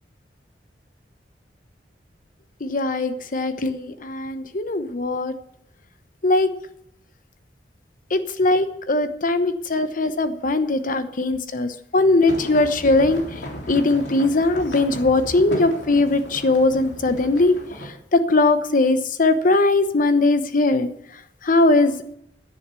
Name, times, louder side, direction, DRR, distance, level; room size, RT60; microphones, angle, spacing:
voice 1, 2.6-5.3 6.2-6.5 8.1-13.2 13.7-17.5 18.1-20.9 21.5-22.1, left 2 dB, 50° left, 10 dB, 0.9 m, -20 dB
sound 1, 12.3-17.9, equal, 75° left, 3.4 m, -35 dB
10.5 x 10.0 x 6.8 m, 0.77 s
head